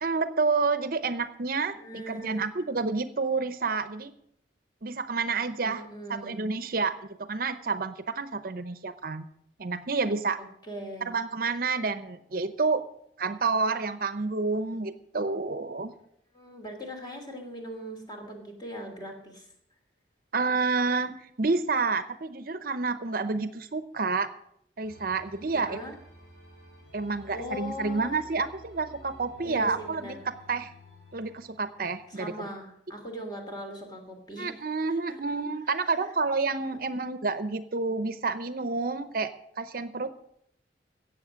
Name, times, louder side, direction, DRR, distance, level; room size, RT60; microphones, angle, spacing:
voice 1, 0.0-4.1 4.8-5.8 6.1-9.2 9.6-10.4 11.1-12.8 13.2-15.9 20.3-24.3 24.8-25.8 26.9-30.2 30.5-30.7 31.1-32.3 34.4-39.3 39.6-40.1, right 4 dB, 55° right, 12 dB, 0.7 m, -29 dB
voice 2, 1.7-2.5 5.6-6.4 10.4-11.1 16.3-19.5 25.5-25.9 27.3-28.2 29.4-30.3 32.1-34.5 34.9-35.2 35.8-36.1, equal, 25° left, 3 dB, 2.8 m, -40 dB
sound 1, 24.8-32.2, equal, 65° left, 5.4 m, -52 dB
17.0 x 7.4 x 6.3 m, 0.72 s
head